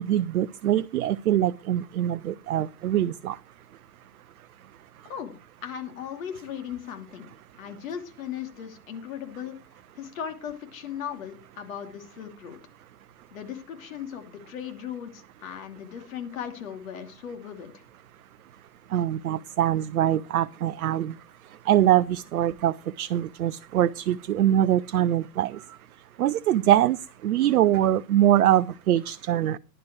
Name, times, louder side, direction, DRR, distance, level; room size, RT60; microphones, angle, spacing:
voice 1, 0.0-3.4 4.4-5.1 18.6-29.6, right 12 dB, 60° right, 15 dB, 0.6 m, -24 dB
voice 2, 5.0-5.4 5.6-7.3 7.6-9.6 9.9-12.6 13.3-17.8, left 8 dB, 55° left, 5 dB, 2.9 m, -37 dB
15.0 x 11.0 x 3.2 m, 0.34 s
hypercardioid pair, 125°, 49 cm